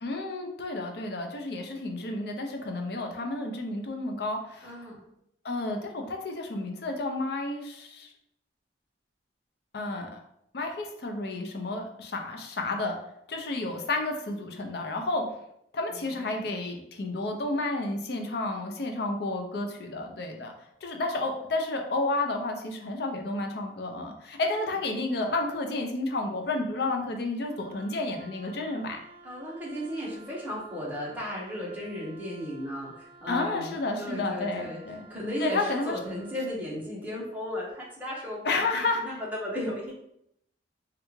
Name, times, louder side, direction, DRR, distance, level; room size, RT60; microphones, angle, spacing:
voice 1, 0.0-4.7 5.4-8.1 9.7-10.2 10.5-13.0 13.3-15.2 15.7-20.5 20.8-29.0 33.3-35.0 35.4-36.0 38.4-39.0, left 2 dB, 55° left, 3 dB, 0.5 m, -31 dB
voice 2, 4.6-5.0 15.9-16.6 29.2-34.8 35.1-39.9, equal, 10° right, -6 dB, 0.9 m, -35 dB
Wind instrument woodwind instrument, 27.5-36.6, right 3 dB, 75° right, 0.4 m, -53 dB
3.3 x 2.4 x 3.0 m, 0.75 s
head